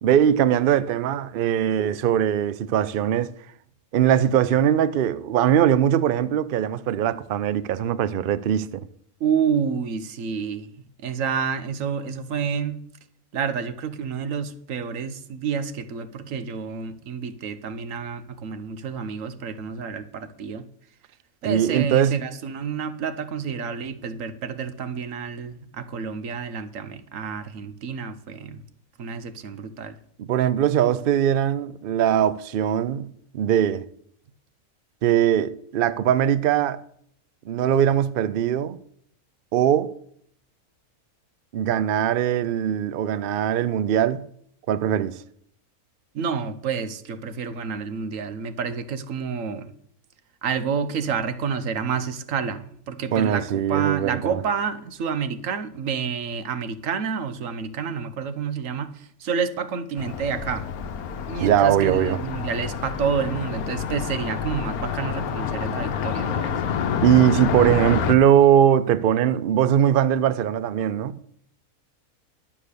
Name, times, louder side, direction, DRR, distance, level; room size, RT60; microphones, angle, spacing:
voice 1, 0.0-3.3 3.9-8.9 21.5-22.2 30.2-33.9 35.0-36.8 37.5-38.8 39.5-39.9 41.5-44.3 44.7-45.2 53.1-54.4 61.4-62.2 67.0-71.2, right 10 dB, 85° right, 0.4 m, -21 dB
voice 2, 9.2-10.7 11.0-12.8 13.3-20.7 21.4-28.6 29.0-30.0 46.1-49.7 50.4-60.7 61.3-66.6, right 6 dB, 60° right, 1.2 m, -29 dB
Car passing by, 60.0-68.1, left 7 dB, 75° left, 1.2 m, -28 dB
11.5 x 7.5 x 6.7 m
omnidirectional pair, 1.6 m